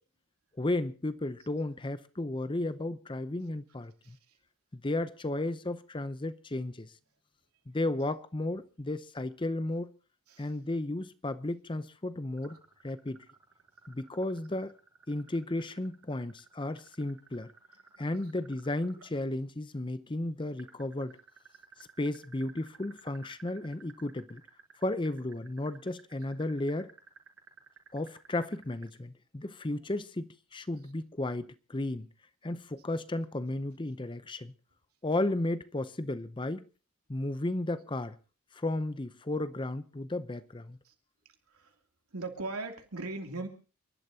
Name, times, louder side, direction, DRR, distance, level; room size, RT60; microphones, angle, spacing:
voice 1, 0.6-4.2 4.7-6.9 7.7-9.9 10.4-12.6 12.8-13.3 13.9-14.7 15.1-17.5 18.0-21.2 21.8-24.4 24.8-26.9 27.9-32.1 32.4-34.5 35.0-36.7 37.1-38.2 38.5-40.8, left 2 dB, 20° left, 0.6 m, -34 dB
sound 1, 12.4-19.1 20.6-28.8, right 6 dB, 70° right, 6.0 m, -55 dB
voice 2, 42.1-43.5, right 3 dB, 85° right, 2.9 m, -38 dB
29.5 x 12.0 x 2.8 m
head